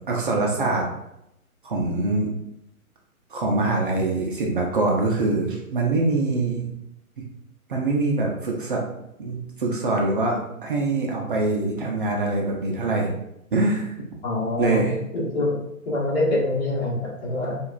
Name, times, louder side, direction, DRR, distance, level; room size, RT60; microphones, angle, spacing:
voice 1, 0.1-0.9 1.6-2.3 3.3-6.7 7.7-8.8 9.2-13.1 13.5-14.1 14.6-15.0, right 2 dB, 40° right, -1 dB, 0.5 m, -24 dB
voice 2, 14.2-14.8 15.1-15.6 15.8-17.6, left 1 dB, 45° left, -5 dB, 1.4 m, -25 dB
4.6 x 2.5 x 2.4 m, 0.82 s
figure-of-eight pair, 130°, 43 cm